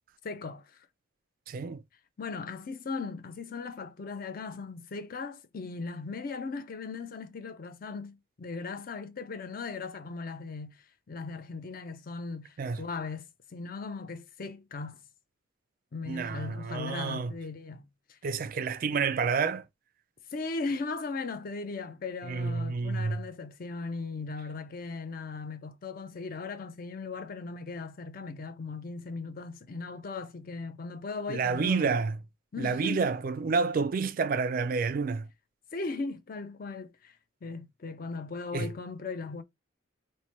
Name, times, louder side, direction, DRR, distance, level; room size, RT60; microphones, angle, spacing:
voice 1, 0.2-0.9 2.2-15.0 15.9-18.2 20.3-32.0 32.5-33.1 35.7-39.4, left 4 dB, 45° left, 0.4 m, -38 dB
voice 2, 1.5-1.8 12.6-12.8 16.1-17.3 18.2-19.6 22.2-23.2 31.3-32.2 32.6-35.3 38.5-38.7, right 5 dB, 45° right, 0.3 m, -29 dB
3.1 x 2.2 x 4.0 m
head